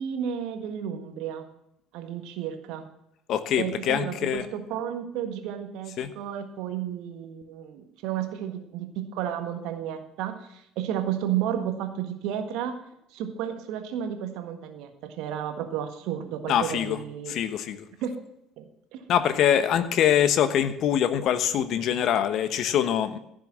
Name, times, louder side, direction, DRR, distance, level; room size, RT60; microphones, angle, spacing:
voice 1, 0.0-1.4 1.9-2.8 3.6-12.7 13.1-17.3 18.0-18.1 18.6-19.0, right 9 dB, 60° right, 6 dB, 1.6 m, -32 dB
voice 2, 3.3-4.5 6.0-6.1 16.5-17.0 17.3-17.8 19.1-23.2, left 9 dB, 55° left, 11 dB, 1.1 m, -24 dB
15.0 x 6.6 x 7.5 m, 0.78 s
figure-of-eight pair, 55°, 0 cm